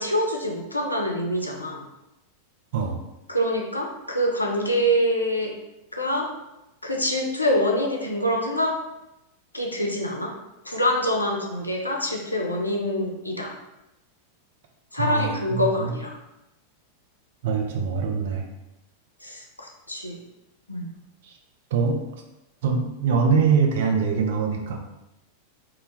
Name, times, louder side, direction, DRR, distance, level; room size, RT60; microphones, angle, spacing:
voice 1, 0.0-1.8 3.3-5.5 5.9-6.3 6.8-8.7 9.5-10.3 10.7-13.5 14.9-16.2 19.2-20.2 20.7-20.9, equal, 85° left, 0 dB, 0.4 m, -25 dB
voice 2, 14.9-16.0 17.4-18.5 21.2-21.3 21.7-22.0 22.6-24.8, right 5 dB, 55° right, 2 dB, 0.4 m, -23 dB
2.1 x 2.1 x 3.1 m, 0.93 s
figure-of-eight pair, 90°, 0 cm